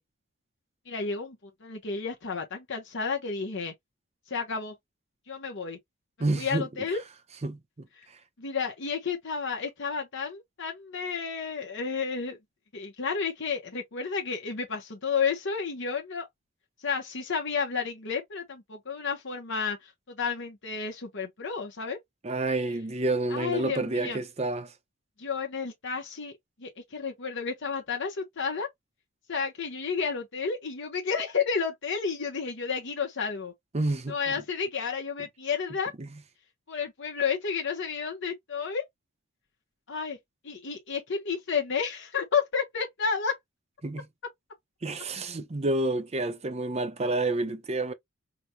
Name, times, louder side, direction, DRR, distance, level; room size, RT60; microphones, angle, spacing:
voice 1, 0.9-3.7 4.3-4.7 5.3-5.8 6.4-7.0 8.4-12.4 12.7-16.3 16.8-22.0 23.3-24.2 25.2-26.3 26.6-28.7 29.3-33.5 34.1-35.9 36.7-38.8 39.9-40.2 40.4-43.3, left 5 dB, 60° left, 0.9 m, -31 dB
voice 2, 6.2-6.7 7.4-7.9 22.2-24.7 33.7-34.2 36.0-36.1 43.8-44.1 44.8-47.9, right 2 dB, 30° right, 0.6 m, -29 dB
5.0 x 2.2 x 2.7 m
head